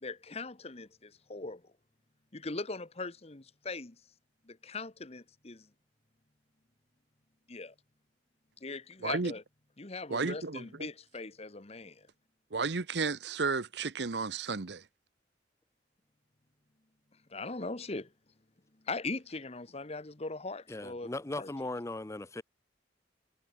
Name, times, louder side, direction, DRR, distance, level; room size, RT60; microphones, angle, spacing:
voice 1, 0.0-1.6 2.3-4.0 4.5-5.7 7.5-7.7 8.6-9.4 9.8-12.1 17.3-18.1 18.8-21.1 21.4-21.5, left 3 dB, 35° left, 1.2 m, -40 dB
voice 2, 9.0-9.3 10.1-10.9 12.5-14.8, right 4 dB, 65° right, 0.9 m, -33 dB
voice 3, 20.7-22.4, left 2 dB, 15° left, 0.6 m, -38 dB
head